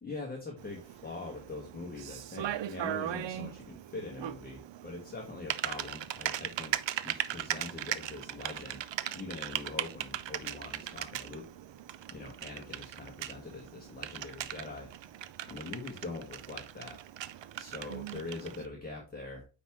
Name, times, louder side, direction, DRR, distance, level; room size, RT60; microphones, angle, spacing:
voice 1, 0.0-11.5 12.1-15.1 15.5-17.0 17.6-19.4, left 3 dB, 20° left, 0 dB, 1.3 m, -43 dB
Typing, 0.6-18.7, right 12 dB, 90° right, 0.6 m, -39 dB
9.2 x 3.6 x 3.0 m, 0.32 s
wide cardioid pair, 155°, 43 cm